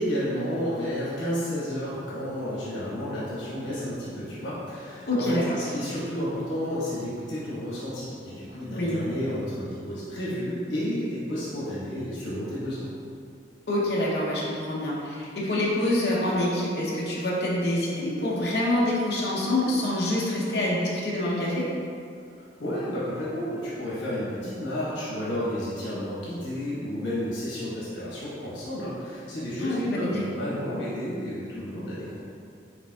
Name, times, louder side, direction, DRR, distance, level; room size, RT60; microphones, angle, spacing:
voice 1, 0.0-12.9 22.3-32.2, equal, 85° left, -8 dB, 1.0 m, -31 dB
voice 2, 5.1-5.6 8.7-9.0 13.7-21.7 29.6-30.3, left 1 dB, 60° left, -6 dB, 0.7 m, -26 dB
5.1 x 3.5 x 2.2 m, 2.4 s
head